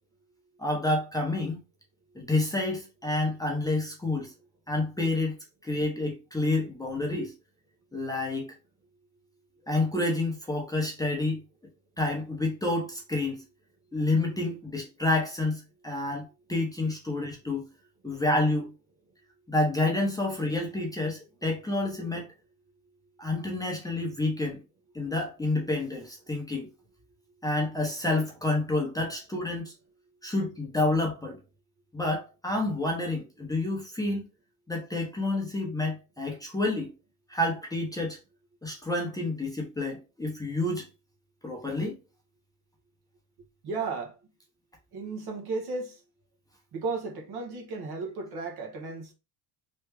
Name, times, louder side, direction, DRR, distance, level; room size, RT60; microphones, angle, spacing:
voice 1, 0.6-1.6 2.1-4.3 4.7-5.4 5.6-7.3 7.9-8.6 9.7-11.4 12.0-13.4 13.9-17.7 18.0-18.7 19.5-22.3 23.2-24.6 24.9-26.7 27.4-29.7 30.2-31.4 31.9-34.3 34.7-36.9 37.3-38.2 38.6-40.9 41.4-41.9, left 2 dB, 10° left, 0.9 m, -29 dB
voice 2, 43.6-44.2 44.9-46.0 46.7-49.1, right 4 dB, 55° right, 1.3 m, -34 dB
3.3 x 2.3 x 3.3 m
cardioid pair, 100°, 46 cm